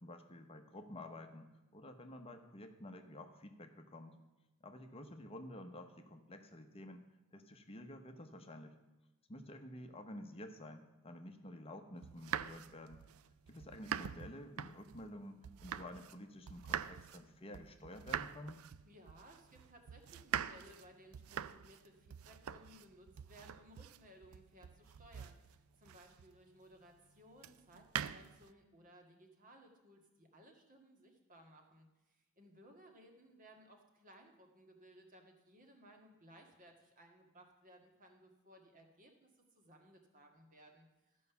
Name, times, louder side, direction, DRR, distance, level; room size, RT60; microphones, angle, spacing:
voice 1, 0.0-4.2 4.6-7.0 7.3-8.7 9.3-13.0 13.5-18.6, left 1 dB, 25° left, 6 dB, 0.8 m, -51 dB
sound 1, 12.0-16.2 16.5-26.4 27.4-28.5, right 9 dB, 85° right, 0.4 m, -44 dB
voice 2, 18.8-41.3, equal, 40° right, 3 dB, 1.8 m, -61 dB
13.0 x 5.4 x 6.9 m, 1.1 s
head